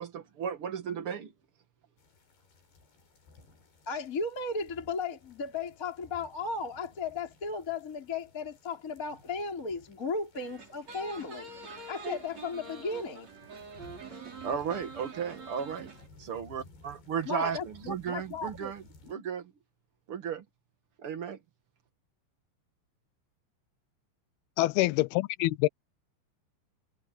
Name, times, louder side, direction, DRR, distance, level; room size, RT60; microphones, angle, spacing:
voice 1, 0.0-1.3 14.4-15.9 16.2-18.8 19.1-19.5 20.1-20.4 21.0-21.4, right 7 dB, 85° right, 1.2 m, -35 dB
sound 1, 2.0-19.1, left 3 dB, 55° left, 8.0 m, -58 dB
voice 2, 3.9-11.5 11.9-13.3 17.2-18.7, left 4 dB, 20° left, 4.0 m, -35 dB
sound 2, 10.3-16.1, right 4 dB, 35° right, 6.1 m, -45 dB
voice 3, 24.6-25.7, left 19 dB, 80° left, 2.2 m, -26 dB
omnidirectional pair, 5.5 m